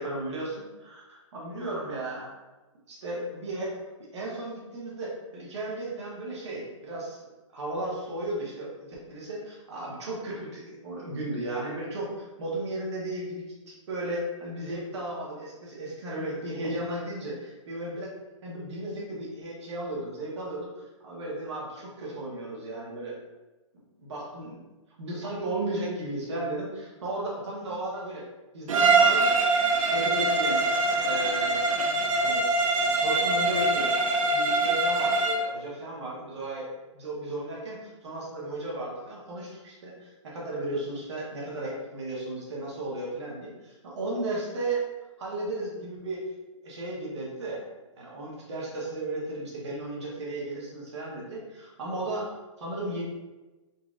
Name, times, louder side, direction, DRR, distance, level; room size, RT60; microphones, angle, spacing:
voice 1, 0.0-2.3 2.9-3.8 4.1-7.3 7.5-18.1 18.4-23.1 24.0-24.6 25.0-28.2 28.5-29.3 29.6-30.6 31.0-31.6 32.2-32.4 33.0-36.7 36.9-44.9 45.2-46.2 46.6-47.6 48.0-53.0, right 2 dB, 55° right, -5 dB, 1.4 m, -35 dB
Bowed string instrument, 28.7-35.5, right 3 dB, 80° right, 0.6 m, -24 dB
4.0 x 2.9 x 2.5 m, 1.2 s
hypercardioid pair, 165°, 17 cm